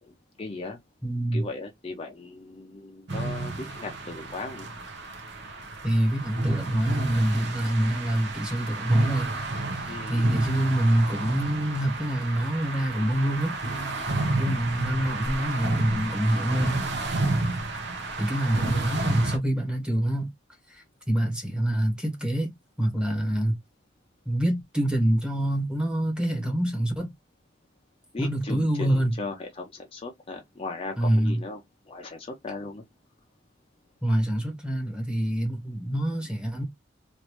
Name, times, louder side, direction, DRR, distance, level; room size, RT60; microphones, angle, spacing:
voice 1, 0.0-0.8 1.3-4.7 9.9-10.4 28.1-31.6 31.9-32.8, left 3 dB, 30° left, 0.5 m, -37 dB
voice 2, 1.0-1.4 5.8-9.4 9.8-13.6 14.3-16.9 18.2-20.3 20.7-22.5 22.8-23.6 24.2-27.1 28.2-29.1 31.0-31.4 34.0-36.6, right 1 dB, 5° right, 1.1 m, -26 dB
sound 1, 3.1-19.4, right 2 dB, 60° right, 0.9 m, -30 dB
3.1 x 2.6 x 3.0 m
head